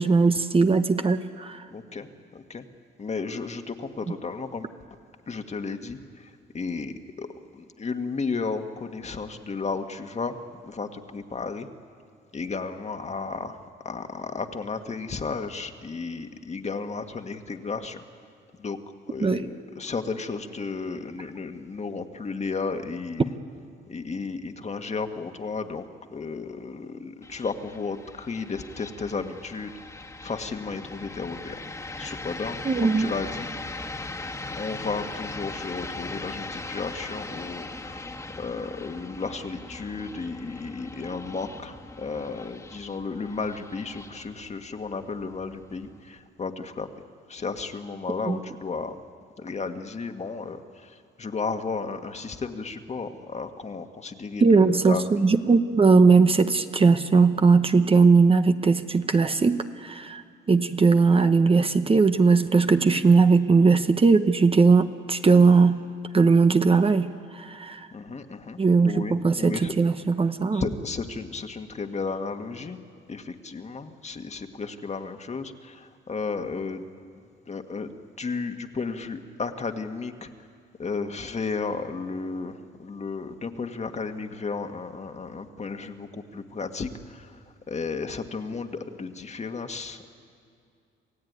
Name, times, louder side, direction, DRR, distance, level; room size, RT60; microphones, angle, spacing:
voice 1, 0.0-1.6 19.2-19.4 32.6-33.1 48.3-48.4 54.4-60.2 60.5-65.9 66.1-67.9 68.6-70.6, right 4 dB, 30° right, 9 dB, 1.0 m, -19 dB
voice 2, 1.7-2.6 3.0-4.7 5.3-7.3 7.5-10.4 10.6-11.7 12.3-18.0 18.6-18.8 19.1-23.3 23.9-25.8 26.1-30.0 30.2-31.6 32.0-33.5 34.6-38.1 38.4-46.9 47.3-49.0 49.4-55.3 67.9-69.7 70.5-72.8 73.1-76.9 77.5-80.3 80.8-87.4 87.7-90.1, left 4 dB, 35° left, 6 dB, 1.7 m, -33 dB
sound 1, 27.2-46.2, left 2 dB, 15° left, 1.8 m, -39 dB
27.5 x 16.0 x 9.5 m, 2.4 s
cardioid pair, 90°, 20 cm